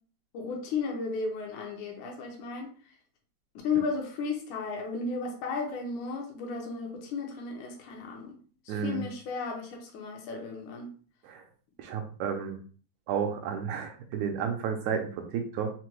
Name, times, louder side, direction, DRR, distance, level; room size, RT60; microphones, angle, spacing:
voice 1, 0.3-2.7 3.6-8.4 8.7-10.9, left 4 dB, 80° left, 1 dB, 2.3 m, -34 dB
voice 2, 8.7-9.0 11.2-11.4 11.8-12.6 13.1-15.7, right 6 dB, 80° right, 4 dB, 1.9 m, -32 dB
5.7 x 2.2 x 3.1 m, 0.41 s
omnidirectional pair, 3.5 m